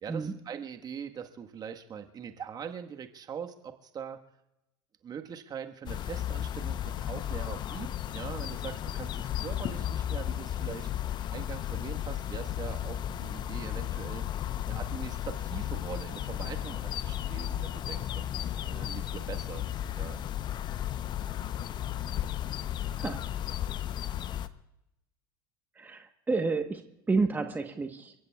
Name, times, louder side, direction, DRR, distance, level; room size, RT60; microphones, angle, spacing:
voice 1, 0.0-4.2 5.0-7.9 8.1-10.9 11.3-14.2 14.7-19.7 20.0-20.2, right 7 dB, 30° right, 5 dB, 1.5 m, -42 dB
sound 1, 5.9-24.5, left 11 dB, 35° left, 0.8 m, -34 dB
voice 2, 25.8-28.1, right 3 dB, 15° right, 6 dB, 1.2 m, -30 dB
30.0 x 16.0 x 2.4 m, 0.90 s
hypercardioid pair, 80°, 12 cm